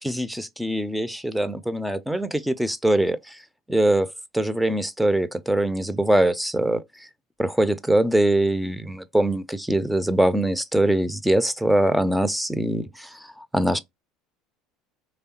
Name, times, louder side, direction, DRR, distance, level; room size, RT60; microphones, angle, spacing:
voice 1, 0.0-3.4 3.7-6.8 7.4-13.8, right 1 dB, 5° right, 0.5 m, -23 dB
4.2 x 3.3 x 2.9 m
figure-of-eight pair, 65°, 0 cm